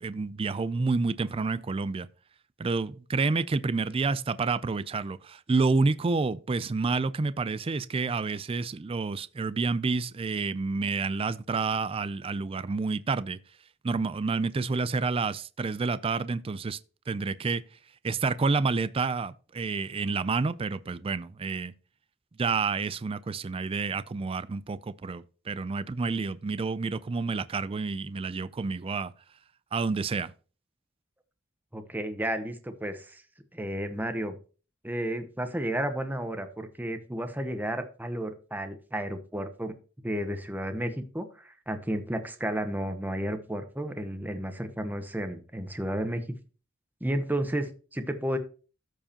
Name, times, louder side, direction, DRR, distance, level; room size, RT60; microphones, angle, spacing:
voice 1, 0.0-2.1 2.6-13.4 13.8-16.8 17.1-17.6 18.0-21.7 22.4-29.1 29.7-30.3, right 4 dB, 30° right, 0.4 m, -29 dB
voice 2, 31.7-33.2 33.5-34.3 34.8-39.7 40.0-46.2 47.0-48.4, right 1 dB, 10° right, 0.9 m, -32 dB
14.0 x 4.8 x 2.9 m
head